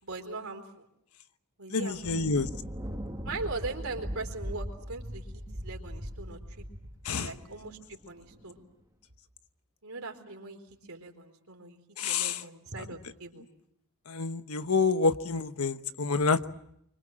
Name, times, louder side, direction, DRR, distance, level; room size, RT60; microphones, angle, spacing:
voice 1, 0.0-0.9 1.6-2.2 3.2-6.6 7.1-8.6 9.8-10.6 10.9-11.8 12.1-13.5, right 3 dB, 70° right, 4 dB, 4.2 m, -40 dB
voice 2, 1.7-2.5 7.0-7.3 12.0-12.4 14.1-16.5, left 4 dB, 80° left, 10 dB, 1.2 m, -28 dB
Thunder, 1.9-8.5, equal, 15° right, 2.6 m, -40 dB
26.5 x 24.5 x 7.6 m, 0.75 s
head